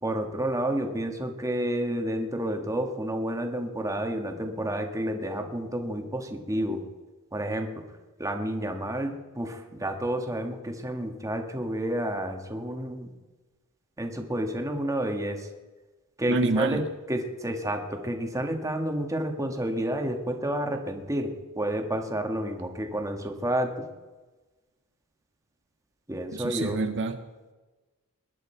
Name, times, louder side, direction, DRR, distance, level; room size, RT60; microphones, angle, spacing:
voice 1, 0.0-6.8 7.3-7.8 8.2-13.1 14.0-15.5 16.2-23.8 26.1-26.8, right 1 dB, 15° right, 4 dB, 1.5 m, -30 dB
voice 2, 16.3-16.8 26.3-27.2, right 3 dB, 55° right, 8 dB, 0.8 m, -27 dB
20.5 x 11.0 x 4.5 m, 1.2 s
head